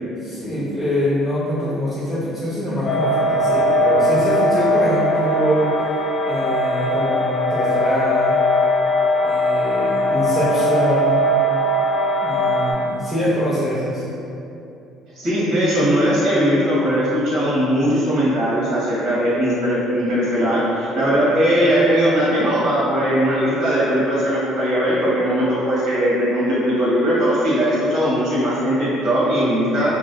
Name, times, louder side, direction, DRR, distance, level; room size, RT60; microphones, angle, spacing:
voice 1, 0.2-5.8 6.2-8.4 9.2-11.2 12.2-14.0, equal, ahead, -12 dB, 0.7 m, -24 dB
sound 1, 2.8-12.7, equal, 70° left, 0.8 m, -19 dB
voice 2, 15.2-29.9, equal, 60° right, -9 dB, 1.4 m, -19 dB
3.2 x 2.5 x 2.2 m, 2.7 s
supercardioid pair, 85°, 0 cm